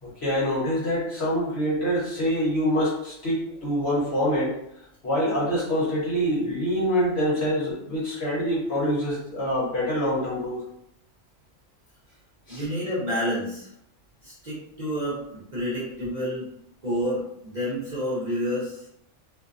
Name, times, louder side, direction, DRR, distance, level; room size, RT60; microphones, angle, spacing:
voice 1, 0.0-4.5 5.0-10.6 12.5-12.6, equal, 55° left, -7 dB, 1.2 m, -25 dB
voice 2, 12.5-13.7 14.2-16.5 16.8-18.9, equal, 40° right, -9 dB, 0.7 m, -29 dB
2.6 x 2.1 x 2.5 m, 0.75 s
omnidirectional pair, 1.4 m